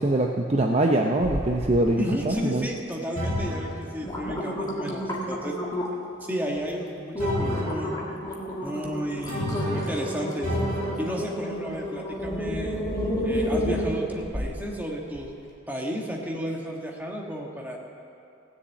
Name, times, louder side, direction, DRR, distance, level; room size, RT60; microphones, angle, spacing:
voice 1, 0.0-2.7, right 1 dB, 30° right, 1 dB, 0.6 m, -23 dB
sound 1, 1.2-1.9 2.2-2.8 3.3-3.4 3.8-6.1 6.6-6.7 7.2-14.7 15.1-15.2, equal, 20° left, 1.7 m, -30 dB
voice 2, 2.0-5.6 6.2-7.9 8.6-9.5 9.7-10.5 11.0-12.8 13.2-15.4 15.7-17.8, equal, 10° right, -1 dB, 1.5 m, -33 dB
sound 2, 3.2-3.7 7.2-7.7 9.3-9.9 10.4-10.9, left 1 dB, 45° right, 4.3 m, -29 dB
16.5 x 7.1 x 8.3 m, 2.6 s
head